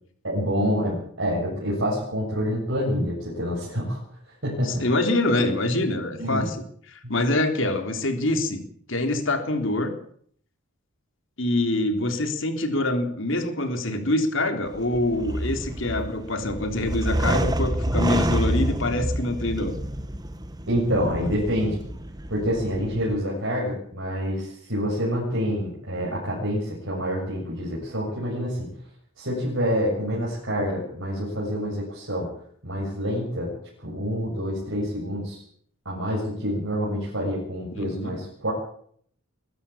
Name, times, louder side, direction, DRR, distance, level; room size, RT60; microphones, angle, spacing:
voice 1, 0.2-4.0 4.4-4.9 6.2-6.5 7.0-7.1 20.7-21.8 22.3-28.7 29.2-32.3 32.6-33.5 33.8-35.4 35.9-38.5, equal, 60° right, -5 dB, 7.2 m, -27 dB
voice 2, 4.6-6.6 6.9-8.6 8.9-9.9 11.4-19.8 37.7-38.1, left 2 dB, 60° left, 6 dB, 3.5 m, -25 dB
sound 1, 14.7-23.2, right 1 dB, 20° right, 1.4 m, -28 dB
23.0 x 13.5 x 8.6 m, 0.62 s
head